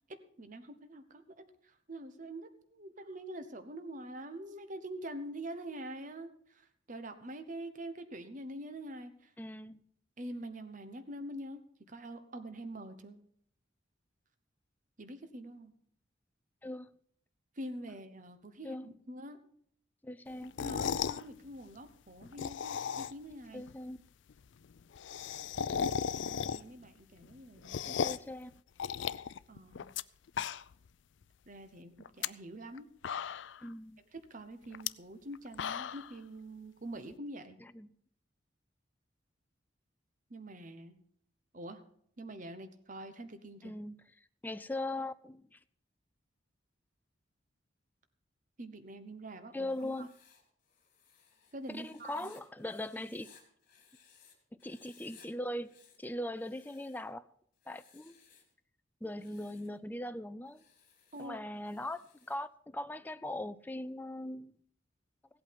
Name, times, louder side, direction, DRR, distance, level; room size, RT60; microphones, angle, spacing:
voice 1, 0.1-1.2 1.6-9.3 10.2-11.6 11.9-13.2 15.0-15.7 17.6-19.4 20.6-23.6 25.7-28.1 29.5-29.9 31.5-32.9 34.1-37.6 40.3-41.0 41.5-41.8 42.2-43.7 48.6-50.1 51.5-52.3 61.1-61.4, right 1 dB, 45° right, 1.0 m, -45 dB
voice 2, 9.4-9.8 16.6-16.9 18.6-18.9 20.0-20.5 23.5-24.0 27.9-28.5 33.6-34.0 37.6-37.9 43.6-44.0 44.4-45.6 49.5-50.1 51.7-53.3 54.6-55.7 56.0-57.3 57.7-58.2 59.0-60.6 61.2-64.5, left 1 dB, 10° left, 0.4 m, -40 dB
sound 1, 20.4-21.2 22.2-23.3 23.7-23.8 24.0-24.1 24.3-24.4 24.6-26.9 27.2-28.3 28.8-30.0 30.3-30.9 31.2-31.3 32.0-32.3 32.8-32.9 33.0-33.7 34.7-34.9 35.3-36.1, left 7 dB, 70° left, 0.4 m, -36 dB
Writing, 49.6-54.3 54.6-55.3 55.6-57.1 57.6-58.5 59.0-59.8 60.5-62.4, left 6 dB, 45° left, 3.5 m, -63 dB
16.5 x 8.5 x 5.8 m
head